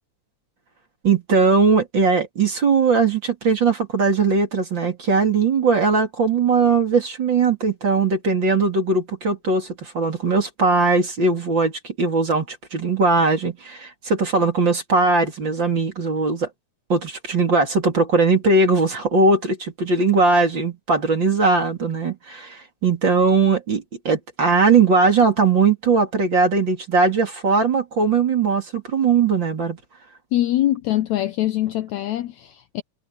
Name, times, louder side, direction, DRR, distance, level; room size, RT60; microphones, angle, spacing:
voice 1, 1.0-16.5 16.9-29.8, right 4 dB, 35° right, 3.3 m, -19 dB
voice 2, 30.3-32.8, left 14 dB, 70° left, 1.9 m, -23 dB
omnidirectional pair, 3.8 m